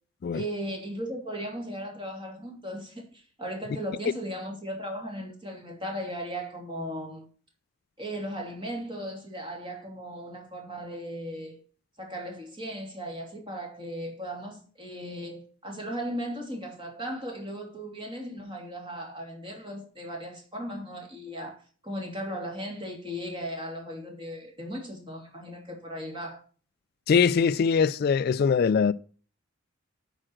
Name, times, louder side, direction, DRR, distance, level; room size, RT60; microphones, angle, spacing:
voice 1, 0.3-7.2 8.0-11.6 12.0-26.4, equal, 25° right, 2.9 m, -37 dB
voice 2, 27.1-28.9, left 6 dB, 50° left, 0.3 m, -22 dB
8.8 x 5.0 x 6.2 m
head